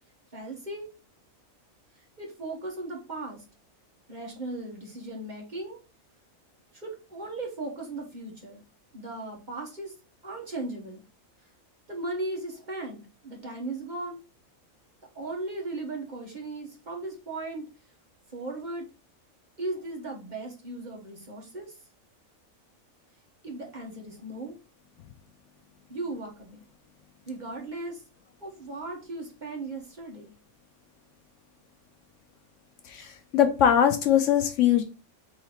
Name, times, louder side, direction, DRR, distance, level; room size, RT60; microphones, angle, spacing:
voice 1, 0.3-0.9 2.2-3.4 4.1-5.8 6.7-8.6 8.9-9.9 10.2-11.0 11.9-14.2 15.1-17.7 18.3-18.9 19.6-21.7 23.4-24.5 25.9-26.6 27.3-28.0 28.4-30.3, right 2 dB, 35° right, -1 dB, 1.2 m, -37 dB
voice 2, 33.3-34.8, left 9 dB, 70° left, 7 dB, 0.9 m, -21 dB
4.0 x 2.9 x 4.3 m, 0.32 s
omnidirectional pair, 1.4 m